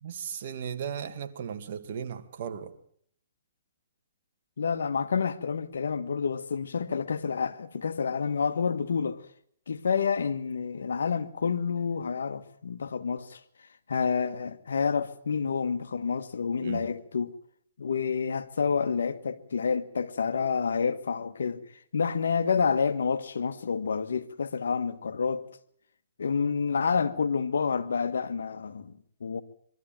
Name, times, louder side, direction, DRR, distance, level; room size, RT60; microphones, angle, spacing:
voice 1, 0.0-2.7 16.6-16.9, right 8 dB, 50° right, 2.2 m, -36 dB
voice 2, 4.6-9.2 9.7-13.4 13.9-17.3 17.8-21.6 21.9-25.5 26.2-29.4, left 5 dB, 85° left, 1.5 m, -29 dB
23.0 x 13.5 x 9.0 m
hypercardioid pair, 150°, 0 cm